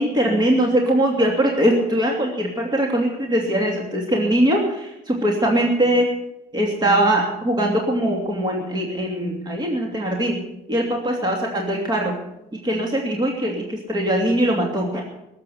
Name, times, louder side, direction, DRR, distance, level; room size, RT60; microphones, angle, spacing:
voice 1, 0.0-6.1 6.5-10.4 10.7-12.1 12.6-15.0, right 1 dB, 25° right, 0 dB, 2.9 m, -21 dB
18.5 x 7.9 x 8.1 m, 0.87 s
cardioid pair, 110°, 17 cm